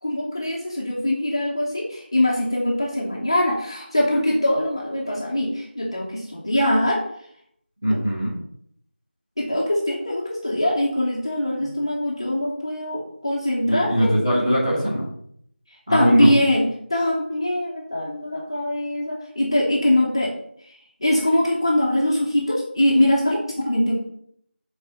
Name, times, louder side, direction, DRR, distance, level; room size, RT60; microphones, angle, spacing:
voice 1, 0.0-7.0 7.9-8.0 9.4-14.1 15.9-20.3 20.6-24.0, left 1 dB, 25° left, -3 dB, 0.8 m, -22 dB
voice 2, 7.8-8.4 13.6-15.1 15.9-16.3, equal, 5° right, -12 dB, 1.2 m, -21 dB
6.6 x 4.1 x 6.3 m, 0.68 s
figure-of-eight pair, 175°, 6 cm